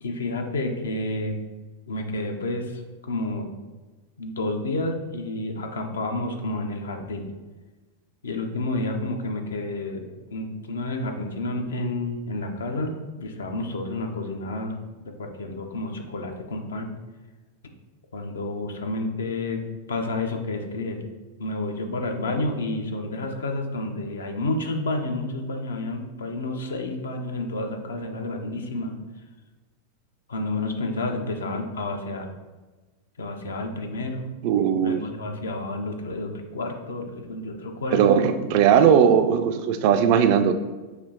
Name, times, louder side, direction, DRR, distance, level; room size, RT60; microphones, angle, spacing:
voice 1, 0.0-1.4 1.9-3.5 4.2-7.3 8.2-16.9 18.1-21.0 21.4-28.9 30.3-32.3 33.2-34.4 34.8-38.2, left 2 dB, 65° left, 4 dB, 0.5 m, -30 dB
voice 2, 34.4-35.0 37.9-40.5, right 8 dB, 45° right, 8 dB, 0.3 m, -18 dB
6.0 x 3.0 x 2.6 m, 1.3 s
figure-of-eight pair, 90°, 0 cm